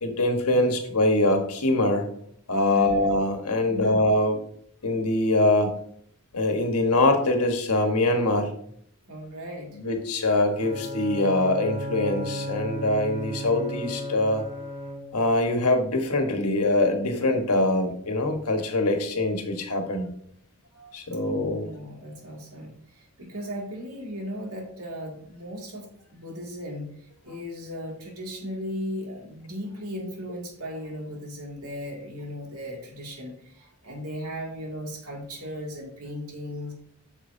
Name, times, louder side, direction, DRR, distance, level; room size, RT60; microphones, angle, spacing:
voice 1, 0.0-2.1 2.5-4.4 4.8-5.8 6.3-8.5 9.7-14.4 15.1-20.1 20.8-21.7, left 2 dB, 90° left, 4 dB, 1.4 m, -23 dB
voice 2, 2.7-3.1 3.6-4.0 9.1-9.8 21.1-26.9 27.2-36.7, equal, 80° right, -1 dB, 2.5 m, -37 dB
Bowed string instrument, 10.5-15.4, equal, 30° right, 2.4 m, -34 dB
8.7 x 6.2 x 2.7 m, 0.65 s
head